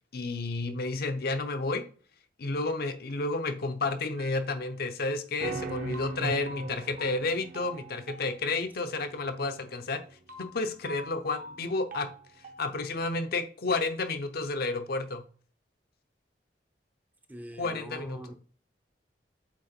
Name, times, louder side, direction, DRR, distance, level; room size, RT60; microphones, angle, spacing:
voice 1, 0.1-1.8 2.4-10.0 10.4-12.1 12.6-15.2 17.6-18.2, left 3 dB, 60° left, 0.6 m, -31 dB
sound 1, 4.2-4.9 5.4-12.9, right 2 dB, 50° right, 0.8 m, -41 dB
voice 2, 17.3-18.3, equal, 10° right, 0.5 m, -43 dB
7.8 x 3.0 x 4.4 m
head